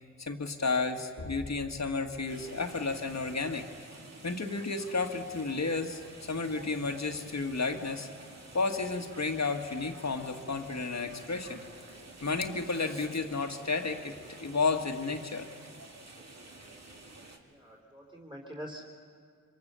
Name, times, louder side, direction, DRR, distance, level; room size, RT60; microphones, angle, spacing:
voice 1, 0.2-3.7 4.2-8.1 8.5-11.6 12.2-15.5, left 4 dB, 55° left, 5 dB, 1.9 m, -32 dB
sound 1, 2.3-17.4, right 2 dB, 55° right, 2.8 m, -50 dB
voice 2, 17.5-18.8, equal, 15° right, 1 dB, 3.7 m, -44 dB
26.5 x 24.0 x 7.0 m, 2.2 s
cardioid pair, 55°, 32 cm